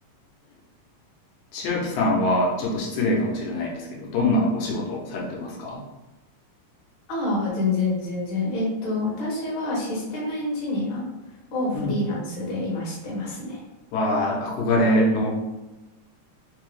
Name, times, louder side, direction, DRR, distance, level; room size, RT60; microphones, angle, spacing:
voice 1, 1.5-5.8 11.7-12.0 13.9-15.3, left 1 dB, 90° left, -3 dB, 2.1 m, -24 dB
voice 2, 7.1-11.0 11.5-13.6, left 2 dB, 55° left, -6 dB, 1.6 m, -27 dB
5.0 x 2.0 x 3.1 m, 1.1 s
omnidirectional pair, 3.4 m